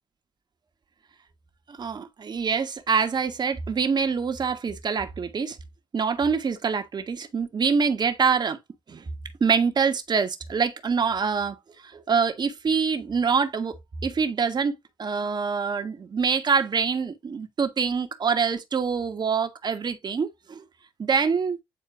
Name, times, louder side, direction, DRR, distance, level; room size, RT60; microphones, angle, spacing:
voice 1, 1.7-5.6 5.9-8.6 8.9-9.0 9.4-11.6 11.8-13.8 14.0-14.7 15.0-20.6 21.0-21.6, right 5 dB, 50° right, 1.5 m, -25 dB
9.4 x 4.3 x 2.6 m
hypercardioid pair, 45°, 10 cm